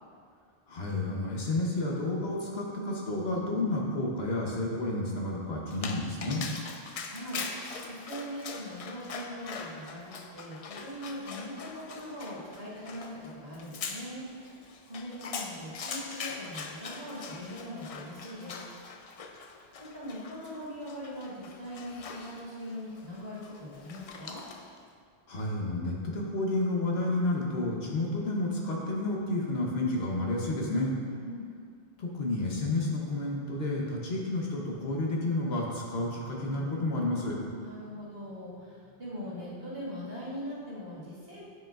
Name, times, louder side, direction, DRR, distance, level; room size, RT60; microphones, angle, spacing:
voice 1, 0.7-6.5 25.3-30.9 32.0-37.4, left 2 dB, 75° left, -2 dB, 1.2 m, -30 dB
Dog, 5.7-24.8, left 4 dB, 55° left, 0.4 m, -42 dB
voice 2, 7.1-18.6 19.0-19.1 19.8-24.4 31.1-31.5 37.5-41.4, equal, 65° right, -9 dB, 2.1 m, -41 dB
9.4 x 4.8 x 2.4 m, 2.2 s
omnidirectional pair, 1.1 m